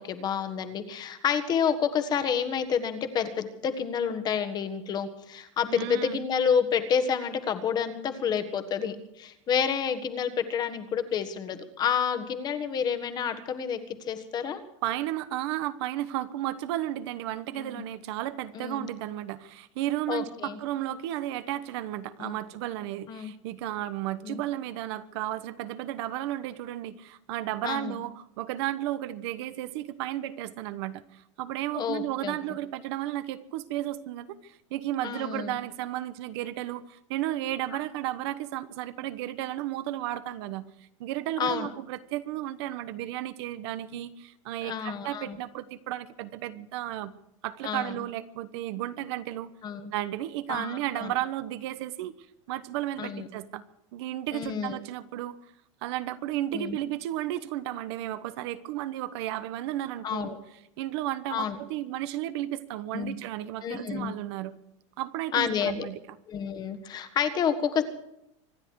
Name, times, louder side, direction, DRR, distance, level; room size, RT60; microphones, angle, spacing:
voice 1, 0.0-13.8 14.1-14.6 17.6-17.8 18.5-18.9 20.1-20.6 22.2-22.4 23.1-23.3 24.2-24.4 27.6-28.0 31.7-32.4 35.0-35.6 41.4-41.7 44.6-45.4 47.6-47.9 49.6-49.9 50.5-51.1 53.0-53.3 54.3-54.8 56.5-56.8 60.0-60.4 61.3-61.6 62.9-63.1 63.6-64.1 65.3-65.9 66.3-67.8, left 7 dB, 25° left, 8 dB, 1.6 m, -29 dB
voice 2, 5.7-6.3 14.8-40.7 41.0-47.1 47.4-49.5 49.9-52.2 52.5-53.6 53.9-55.4 55.8-60.4 60.8-64.6 65.0-66.0, right 13 dB, 55° right, 13 dB, 1.1 m, -33 dB
25.5 x 10.5 x 4.7 m, 0.80 s
supercardioid pair, 155°, 16 cm